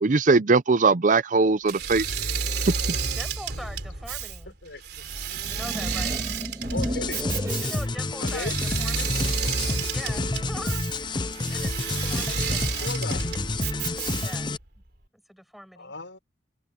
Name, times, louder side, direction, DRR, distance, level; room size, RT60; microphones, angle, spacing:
voice 1, 0.0-2.0, right 4 dB, 45° right, 0.6 m, -20 dB
Engine / Mechanisms, 1.7-14.6, right 5 dB, 60° right, 3.5 m, -31 dB
voice 2, 3.1-4.5 5.4-6.2 7.5-9.3 9.9-13.3 14.1-14.5 15.3-15.9, equal, ahead, 6.9 m, -43 dB
sound 1, 5.2-7.9, equal, 20° right, 2.2 m, -34 dB
voice 3, 6.7-7.3 8.2-8.5 12.6-13.2 15.8-16.2, left 2 dB, 85° left, 5.9 m, -36 dB
sound 2, 6.8-14.6, left 2 dB, 25° left, 0.6 m, -29 dB
head